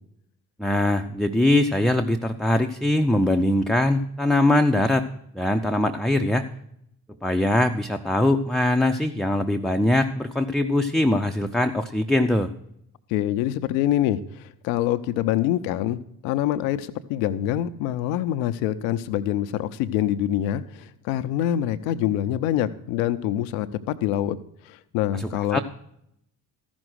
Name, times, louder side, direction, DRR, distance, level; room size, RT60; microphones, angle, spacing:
voice 1, 0.6-5.0 5.3-6.4 7.2-12.5 25.1-25.6, left 1 dB, ahead, 4 dB, 0.7 m, -22 dB
voice 2, 13.1-24.4 24.7-25.6, left 12 dB, 75° left, 13 dB, 0.8 m, -25 dB
14.0 x 6.2 x 6.3 m, 0.75 s
hypercardioid pair, 50°, 46 cm